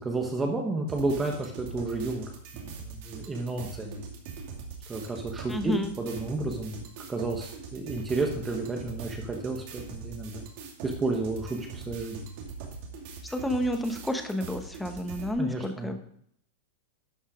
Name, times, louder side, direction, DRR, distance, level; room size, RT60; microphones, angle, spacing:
voice 1, 0.0-4.0 4.9-10.4 10.8-12.3 15.4-16.0, right 3 dB, 15° right, 2 dB, 1.2 m, -32 dB
sound 1, 0.9-15.3, right 5 dB, 55° right, 2.6 m, -42 dB
voice 2, 5.5-5.9 13.2-16.0, left 1 dB, 5° left, 6 dB, 1.0 m, -30 dB
12.0 x 5.5 x 5.0 m, 0.66 s
supercardioid pair, 155°, 0 cm